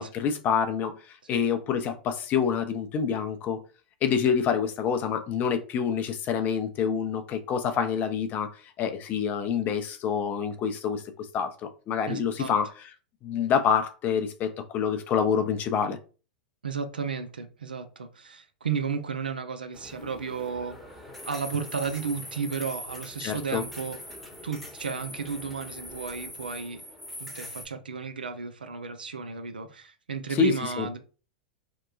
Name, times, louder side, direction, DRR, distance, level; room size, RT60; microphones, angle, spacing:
voice 1, 0.0-3.6 4.0-12.9 13.2-16.0 23.2-23.6 30.3-30.9, left 7 dB, 35° left, 0.5 m, -27 dB
voice 2, 12.1-12.5 16.6-20.8 21.3-24.0 24.4-26.8 27.2-31.0, right 5 dB, 85° right, 0.4 m, -33 dB
sound 1, 19.7-27.7, left 1 dB, 5° left, 0.8 m, -42 dB
2.9 x 2.1 x 2.4 m
hypercardioid pair, 95°, 5 cm